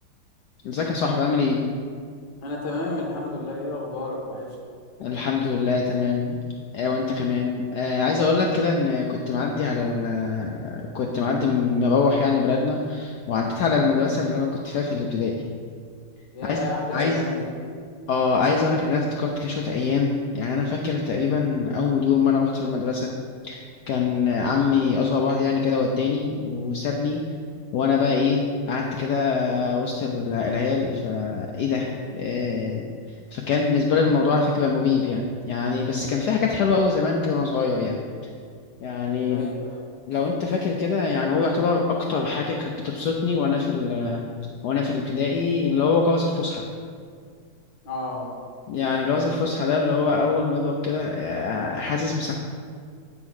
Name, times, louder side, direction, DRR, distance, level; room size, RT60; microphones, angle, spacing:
voice 1, 0.6-1.6 5.0-6.4 6.7-15.3 16.5-16.6 16.9-17.2 18.1-23.1 23.4-27.2 27.7-31.9 32.1-38.0 38.8-39.4 40.1-44.2 44.6-46.6 48.7-52.3, left 4 dB, 75° left, 0 dB, 0.9 m, -24 dB
voice 2, 2.4-4.6 16.3-17.5 39.3-39.8 47.8-48.3, left 2 dB, 55° left, -2 dB, 1.9 m, -31 dB
9.1 x 3.8 x 6.1 m, 2.1 s
omnidirectional pair, 2.4 m